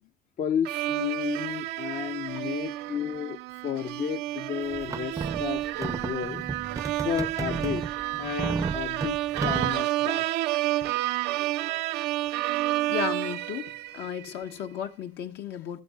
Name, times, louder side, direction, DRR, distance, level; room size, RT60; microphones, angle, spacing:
voice 1, 0.4-3.4 3.6-6.4 7.0-10.3 10.8-10.9, left 9 dB, 55° left, 0.6 m, -32 dB
sound 1, 0.7-14.3, right 16 dB, 90° right, 0.5 m, -30 dB
sound 2, 4.7-9.8, right 4 dB, 20° right, 0.5 m, -33 dB
voice 2, 12.9-15.8, left 9 dB, 80° left, 1.3 m, -34 dB
14.0 x 13.5 x 2.3 m
cardioid pair, 110°, 17 cm